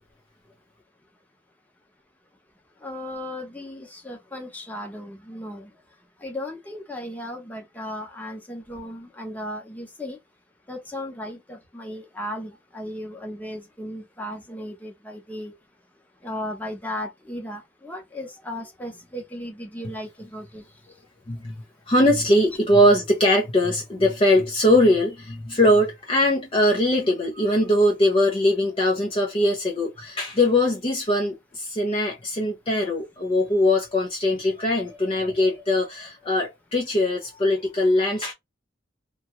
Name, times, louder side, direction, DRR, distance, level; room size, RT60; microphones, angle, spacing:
voice 1, 2.8-5.7 6.2-10.2 10.7-15.5 16.2-20.6, left 1 dB, 10° left, 0.9 m, -36 dB
voice 2, 21.9-38.3, left 1 dB, 30° left, 0.6 m, -21 dB
2.9 x 2.3 x 3.0 m
head